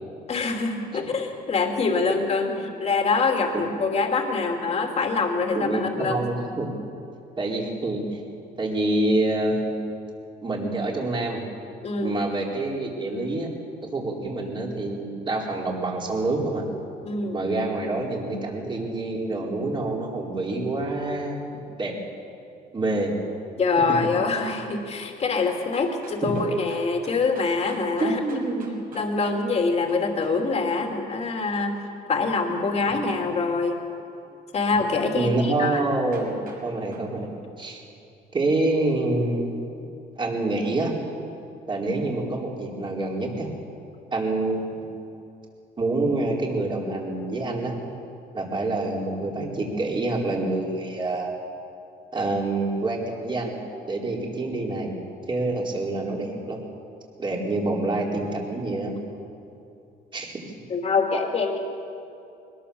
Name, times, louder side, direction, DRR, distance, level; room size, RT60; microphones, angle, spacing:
voice 1, 0.3-6.3 11.8-12.2 17.0-17.4 23.6-28.4 28.9-33.8 34.5-35.8 60.7-61.6, left 4 dB, 40° left, 2 dB, 2.9 m, -25 dB
voice 2, 5.5-6.7 7.4-8.2 8.6-9.8 10.4-11.4 12.0-13.5 13.9-16.6 17.3-21.4 21.8-21.9 22.7-23.1 26.2-26.3 28.0-28.7 35.1-37.8 38.3-39.6 40.2-40.9 41.7-43.5 44.1-45.0 45.8-47.7 48.3-51.3 52.1-53.5 53.9-54.9 55.3-56.6 57.2-58.9 60.1-60.4, right 2 dB, 30° right, -1 dB, 4.3 m, -27 dB
sound 1, 25.4-30.4 35.7-35.8 36.1-36.6 36.9-37.1, right 4 dB, 60° right, 6.9 m, -48 dB
22.0 x 20.5 x 7.1 m, 2.7 s
cardioid pair, 110°, 17 cm